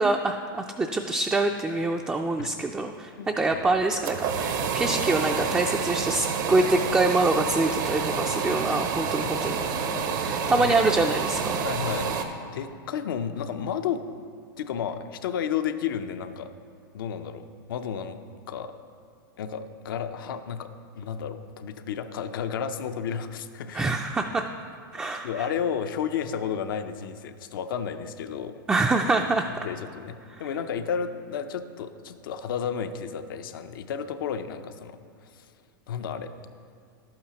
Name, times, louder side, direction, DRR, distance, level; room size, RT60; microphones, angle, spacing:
voice 1, 0.0-9.6 10.2-11.6 23.7-24.4 24.9-25.5 28.7-29.7 30.3-30.4, right 2 dB, 10° right, 3 dB, 0.3 m, -25 dB
voice 2, 3.2-3.6 9.2-10.1 10.5-10.8 11.5-12.1 12.5-14.0 14.6-16.5 16.9-18.2 18.5-18.7 19.4-23.9 25.2-28.5 29.6-35.0 35.3-35.5 35.9-36.3, left 7 dB, 75° left, 9 dB, 0.6 m, -32 dB
sound 1, 3.7-12.2, right 6 dB, 65° right, 0.8 m, -28 dB
11.5 x 8.6 x 2.9 m, 2.2 s
hypercardioid pair, 115°, 11 cm